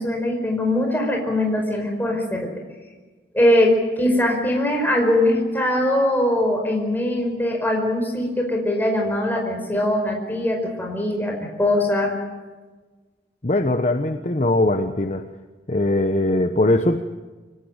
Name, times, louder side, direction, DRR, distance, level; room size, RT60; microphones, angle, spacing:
voice 1, 0.0-2.5 3.3-12.2, left 1 dB, 10° left, 1 dB, 5.0 m, -21 dB
voice 2, 13.4-15.2 15.7-17.0, left 1 dB, 40° left, 7 dB, 1.0 m, -20 dB
25.0 x 17.5 x 8.9 m, 1.3 s
head